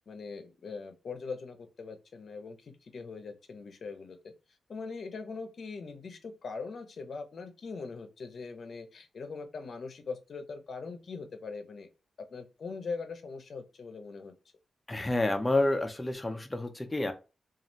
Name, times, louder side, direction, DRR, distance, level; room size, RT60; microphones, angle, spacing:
voice 1, 0.1-4.3 4.7-11.9 12.3-14.3, left 4 dB, 60° left, 6 dB, 0.6 m, -41 dB
voice 2, 14.9-17.1, left 2 dB, 15° left, 7 dB, 0.5 m, -29 dB
3.1 x 2.4 x 2.6 m, 0.30 s
wide cardioid pair, 125°, 0 cm